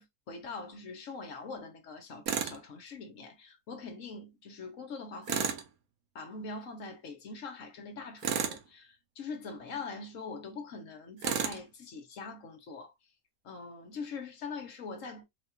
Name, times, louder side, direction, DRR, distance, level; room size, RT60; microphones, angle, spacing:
voice 1, 0.0-5.6 6.1-12.9 13.4-15.2, left 4 dB, 65° left, 1.2 m, -43 dB
Tools, 2.3-2.6 5.3-5.7 8.2-8.7 11.2-11.6, right 8 dB, 75° right, 1.2 m, -31 dB
4.0 x 2.4 x 2.9 m
omnidirectional pair, 1.6 m